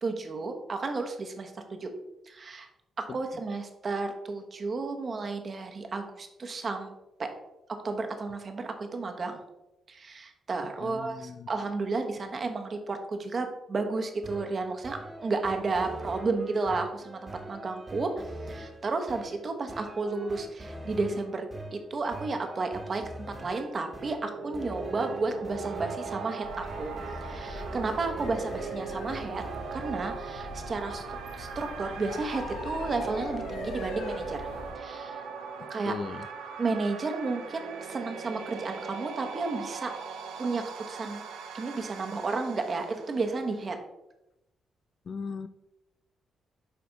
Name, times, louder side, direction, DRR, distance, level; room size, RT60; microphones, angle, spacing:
voice 1, 0.0-1.9 2.3-2.7 3.0-6.9 7.2-7.3 7.8-9.4 9.9-18.1 18.5-26.9 27.2-29.4 29.7-31.0 31.4-34.5 34.7-35.2 35.7-35.9 36.6-39.9 40.4-41.2 41.5-43.8, right 3 dB, 45° right, 5 dB, 1.1 m, -32 dB
voice 2, 10.8-11.5 35.6-36.3 45.1-45.5, left 5 dB, 55° left, 13 dB, 0.4 m, -38 dB
sound 1, 13.9-30.1, right 1 dB, 30° right, 1.3 m, -43 dB
sound 2, 23.9-43.7, right 5 dB, 85° right, 0.7 m, -40 dB
sound 3, 26.4-34.7, left 2 dB, 90° left, 1.1 m, -41 dB
9.1 x 3.4 x 4.0 m, 0.91 s
supercardioid pair, 60°, 0 cm